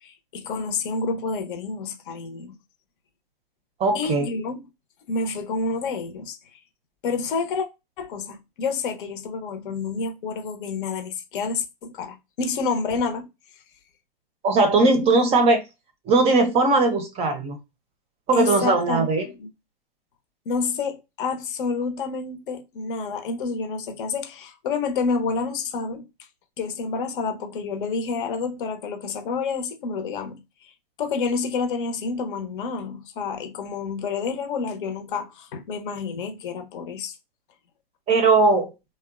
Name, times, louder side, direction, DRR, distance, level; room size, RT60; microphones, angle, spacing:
voice 1, 0.0-2.6 3.9-4.6 5.1-6.4 7.0-7.7 8.0-13.3 18.3-19.1 19.4-19.5 20.5-26.1 26.6-30.7 31.0-37.1, left 4 dB, 60° left, 0.7 m, -29 dB
voice 2, 3.8-4.3 14.4-15.6 16.1-17.6 18.3-19.3 38.1-38.7, right 3 dB, 20° right, 0.5 m, -19 dB
2.8 x 2.1 x 2.4 m
hypercardioid pair, 120°, 29 cm